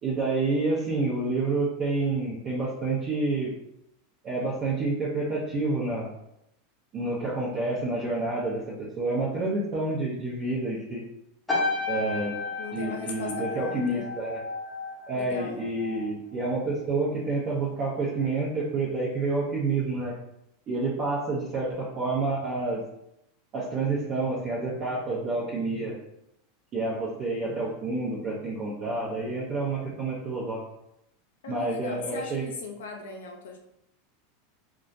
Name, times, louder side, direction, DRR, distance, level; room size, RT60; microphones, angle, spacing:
voice 1, 0.0-3.5 4.2-6.1 6.9-11.0 11.9-12.4 12.7-14.4 15.1-20.1 20.7-22.8 23.5-26.0 26.7-30.6 31.5-32.5, right 3 dB, 40° right, -7 dB, 0.6 m, -28 dB
sound 1, 11.5-16.1 16.4-16.8, left 3 dB, 5° left, 0.7 m, -33 dB
voice 2, 12.6-14.1 15.1-15.6 31.4-33.6, left 4 dB, 80° left, 2 dB, 0.5 m, -38 dB
2.3 x 2.0 x 2.6 m, 0.81 s
hypercardioid pair, 105°, 0 cm